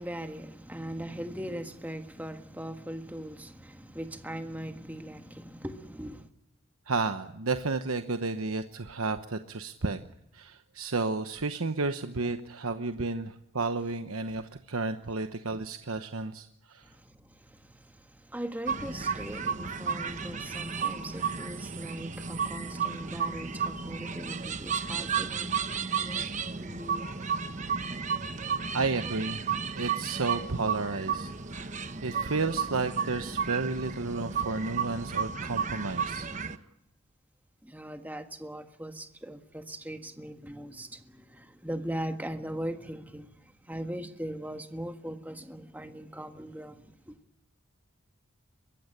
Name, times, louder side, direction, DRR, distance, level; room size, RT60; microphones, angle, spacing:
voice 1, 0.0-6.3 16.2-16.3 16.8-27.2 37.6-47.2, right 1 dB, 10° right, 1.5 m, -40 dB
voice 2, 6.9-10.0 10.3-16.9 28.7-29.4 29.7-31.7 32.0-36.3, right 3 dB, 80° right, 1.1 m, -32 dB
sound 1, 18.7-36.6, right 6 dB, 35° right, 1.1 m, -33 dB
23.0 x 16.0 x 9.9 m
head